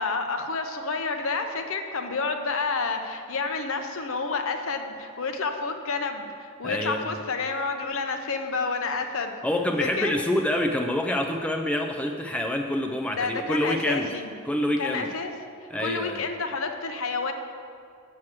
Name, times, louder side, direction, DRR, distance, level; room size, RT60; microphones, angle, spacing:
voice 1, 0.0-9.4 9.8-10.1 13.1-14.3 14.8-15.3 15.8-17.3, left 4 dB, 70° left, 6 dB, 0.8 m, -29 dB
voice 2, 6.6-7.1 9.4-14.1 14.5-15.1 15.7-16.2, left 1 dB, 5° left, 3 dB, 0.4 m, -27 dB
7.4 x 6.1 x 7.5 m, 2.3 s
head